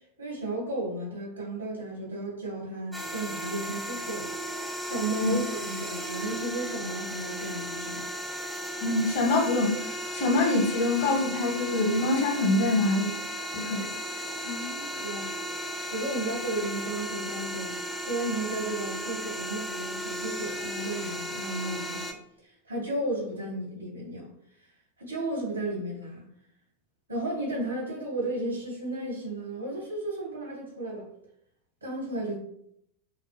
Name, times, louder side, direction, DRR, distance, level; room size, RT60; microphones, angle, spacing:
voice 1, 0.2-4.3 4.8-8.1 14.4-15.3 15.9-17.7 18.0-22.2 22.4-24.3 25.0-26.2 27.1-31.1 31.8-32.4, right 1 dB, 80° right, 1.7 m, -34 dB
sound 1, 2.9-22.1, equal, ahead, 0.6 m, -35 dB
voice 2, 8.8-13.1 13.5-13.9, left 2 dB, 55° left, 1.2 m, -25 dB
5.6 x 2.3 x 3.3 m
figure-of-eight pair, 90°, 0 cm